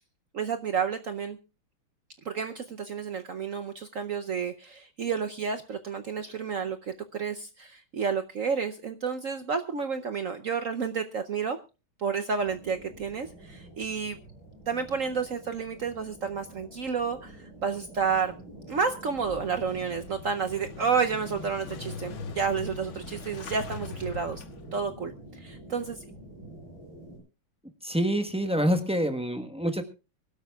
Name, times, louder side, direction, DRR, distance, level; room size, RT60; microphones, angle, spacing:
voice 1, 0.3-1.4 2.2-11.6 12.0-14.2 14.7-18.3 18.7-24.4 24.7-26.0, right 6 dB, 60° right, 8 dB, 0.8 m, -30 dB
sound 1, 12.4-27.2, right 1 dB, 80° right, 8.7 m, -47 dB
Motorcycle / Engine starting, 19.0-24.9, left 4 dB, 75° left, 2.0 m, -42 dB
voice 2, 27.8-29.8, equal, 5° right, 5 dB, 0.8 m, -26 dB
24.5 x 12.5 x 2.3 m, 0.31 s
omnidirectional pair, 2.2 m